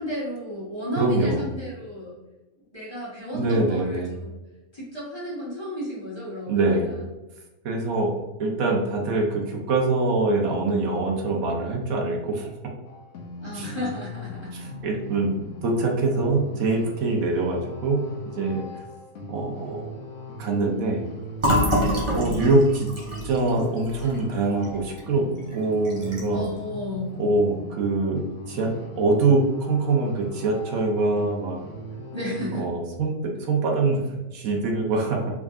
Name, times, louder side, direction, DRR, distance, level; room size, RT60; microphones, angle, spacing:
voice 1, 0.0-2.2 2.7-4.4 4.7-6.8 13.4-14.5 26.3-27.2 32.1-32.7, left 1 dB, 20° left, -8 dB, 1.1 m, -33 dB
voice 2, 1.0-1.5 3.3-4.1 6.5-6.9 7.6-8.1 8.4-12.5 13.5-13.7 14.5-18.0 18.3-18.8 19.3-19.9 20.4-21.1 22.1-22.9 23.2-25.2 25.5-26.5 27.2-31.6 32.5-35.2, right 3 dB, 75° right, 0 dB, 1.2 m, -24 dB
sound 1, 12.9-32.6, left 2 dB, 65° left, 1.0 m, -39 dB
Fill (with liquid), 21.4-25.0 25.4-25.5 25.8-26.5, equal, 25° right, 0.8 m, -26 dB
3.6 x 3.6 x 2.4 m, 1.1 s
omnidirectional pair, 1.5 m